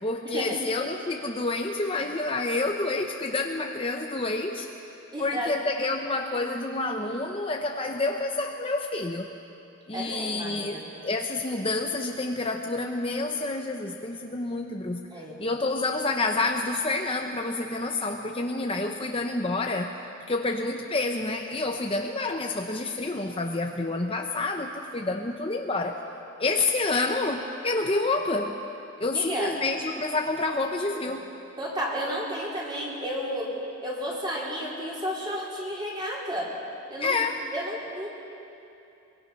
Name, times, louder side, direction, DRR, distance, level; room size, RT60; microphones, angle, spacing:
voice 1, 0.0-4.7 5.2-9.3 9.9-20.0 20.3-26.0 26.4-28.6 29.0-31.3 37.0-37.4, left 2 dB, 25° left, 3 dB, 0.8 m, -28 dB
voice 2, 5.1-5.5 9.9-10.9 15.1-15.4 29.1-29.5 31.0-31.1 31.6-33.5 33.8-36.5 36.9-37.2 37.5-38.1, equal, 20° right, -4 dB, 4.2 m, -32 dB
23.5 x 22.5 x 5.8 m, 2.8 s
head